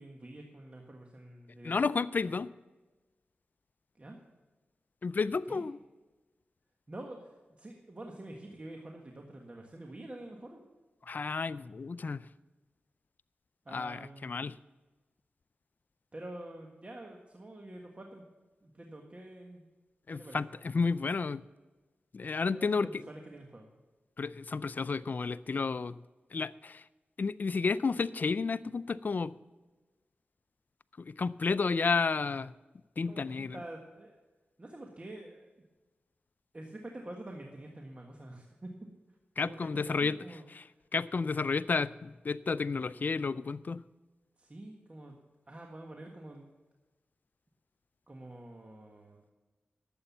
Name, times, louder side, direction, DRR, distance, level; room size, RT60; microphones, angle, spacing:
voice 1, 0.0-1.8 3.9-4.2 5.5-5.6 6.9-10.6 13.6-14.4 16.1-18.2 18.6-19.6 20.1-20.4 22.5-23.7 33.0-34.2 34.6-35.5 36.5-38.7 39.4-40.4 44.4-45.2 45.5-46.5 48.1-49.3, right 1 dB, 35° right, 1 dB, 1.5 m, -47 dB
voice 2, 1.6-2.5 5.0-5.8 11.1-12.2 13.7-14.5 20.1-21.4 22.1-22.9 24.2-25.9 26.3-26.8 27.2-29.3 31.0-32.5 33.0-33.6 39.4-40.1 40.6-40.7 40.9-43.8, left 4 dB, 50° left, 16 dB, 0.4 m, -31 dB
11.5 x 7.8 x 7.1 m, 1.2 s
cardioid pair, 45°, 4 cm